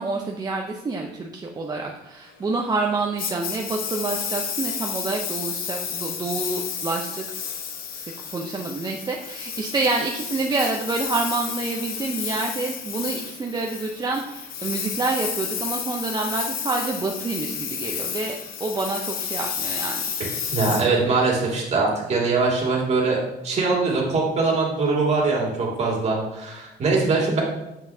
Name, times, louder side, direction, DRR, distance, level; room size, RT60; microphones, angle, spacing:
voice 1, 0.0-7.2 8.3-20.0 20.7-21.2, right 3 dB, 25° right, 1 dB, 0.6 m, -28 dB
Engine, 3.2-21.6, left 7 dB, 60° left, 0.8 m, -31 dB
voice 2, 20.2-23.2 23.4-27.4, right 3 dB, 40° right, -2 dB, 2.1 m, -22 dB
7.3 x 5.6 x 2.7 m, 0.93 s
cardioid pair, 110°, 17 cm